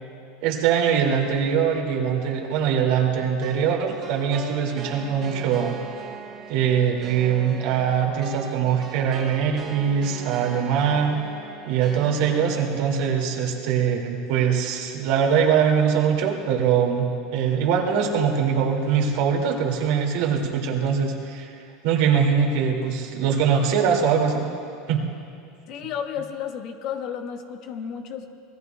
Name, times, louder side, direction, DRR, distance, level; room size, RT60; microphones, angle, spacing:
voice 1, 0.4-5.8 6.5-11.1 11.7-21.5 21.8-24.5 24.9-25.0, right 7 dB, 65° right, 1 dB, 2.2 m, -22 dB
sound 1, 3.4-13.0, right 5 dB, 35° right, 2.6 m, -39 dB
voice 2, 25.7-28.3, left 8 dB, 55° left, 4 dB, 1.4 m, -32 dB
26.0 x 20.5 x 2.3 m, 2.5 s
supercardioid pair, 120°, 0 cm